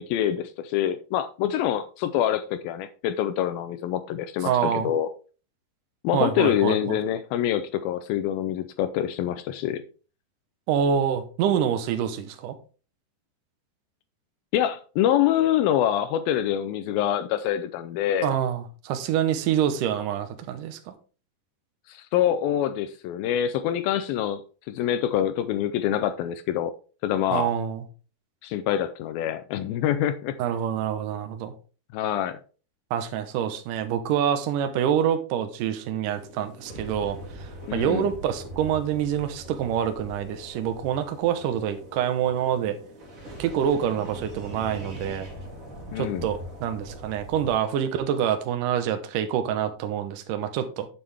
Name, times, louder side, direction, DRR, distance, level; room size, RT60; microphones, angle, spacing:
voice 1, 0.0-5.1 6.0-9.8 14.5-18.3 21.9-24.4 24.7-26.7 27.0-27.5 28.4-30.4 31.9-32.4 37.7-38.1 45.9-46.3, left 11 dB, 80° left, 2.1 m, -25 dB
voice 2, 4.4-4.9 6.1-6.8 10.7-12.6 18.2-20.9 27.3-27.8 30.4-31.5 32.9-42.8 43.4-45.3 46.0-50.9, right 9 dB, 70° right, 2.2 m, -26 dB
sound 1, 36.1-47.6, right 1 dB, 30° right, 1.7 m, -41 dB
9.6 x 7.7 x 3.5 m
omnidirectional pair, 4.8 m